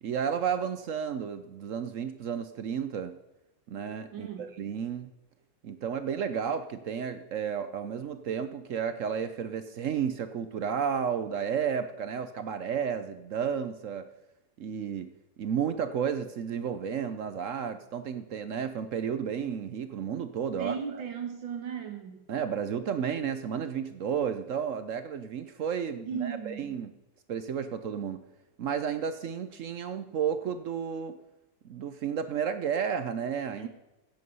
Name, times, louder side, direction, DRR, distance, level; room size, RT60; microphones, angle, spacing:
voice 1, 0.0-3.2 3.7-5.1 5.6-14.1 14.6-15.1 15.4-21.0 22.3-26.9 27.3-28.2 28.6-31.2 31.6-33.7, right 7 dB, 65° right, 10 dB, 0.8 m, -32 dB
voice 2, 4.1-4.5 20.6-22.3 26.1-26.6 33.6-33.7, right 7 dB, 85° right, 5 dB, 2.4 m, -36 dB
16.0 x 8.5 x 5.4 m, 0.99 s
omnidirectional pair, 2.0 m